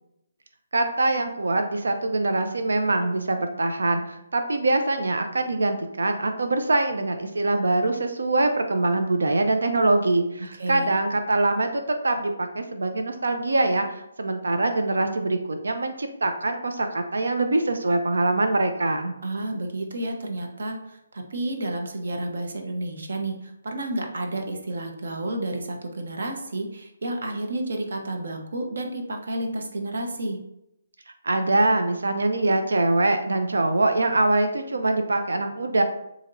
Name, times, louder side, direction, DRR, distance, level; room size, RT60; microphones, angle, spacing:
voice 1, 0.7-19.1 31.2-35.8, right 2 dB, 90° right, 6 dB, 0.6 m, -23 dB
voice 2, 10.6-11.0 19.2-30.4, right 1 dB, 70° right, 3 dB, 1.0 m, -31 dB
7.1 x 2.8 x 2.6 m, 0.83 s
hypercardioid pair, 160°, 0 cm